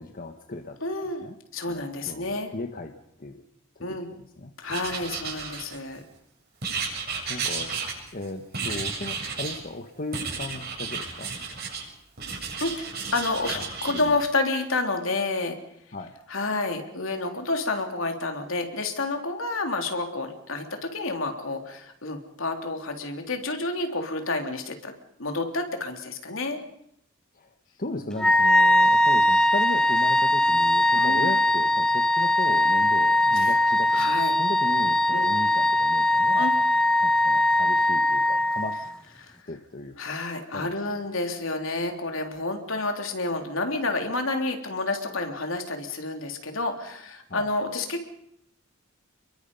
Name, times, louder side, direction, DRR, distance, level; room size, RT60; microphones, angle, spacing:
voice 1, 0.0-0.8 1.2-1.4 1.7-2.9 3.2-3.4 3.8-4.0 4.4-4.5 7.3-7.8 8.1-11.3 13.5-13.7 14.0-14.2 15.9-16.1 27.3-36.5 37.0-38.8 39.5-40.2 40.5-41.1 47.3-47.5, left 2 dB, 45° left, 5 dB, 1.4 m, -36 dB
voice 2, 0.8-1.3 1.5-2.5 3.8-4.1 4.6-6.0 12.6-13.6 13.8-15.6 16.3-24.9 25.2-26.6 30.9-31.4 33.3-33.6 33.9-34.3 35.1-35.3 36.4-36.5 39.2-39.4 40.0-48.1, left 2 dB, 75° left, 4 dB, 3.5 m, -29 dB
Writing, 4.7-6.0 6.6-8.2 8.5-9.6 10.1-11.8 12.2-14.0, right 5 dB, 50° right, 7.7 m, -33 dB
Wind instrument woodwind instrument, 28.2-39.0, left 1 dB, 5° left, 1.0 m, -21 dB
29.0 x 23.0 x 5.5 m, 0.74 s
head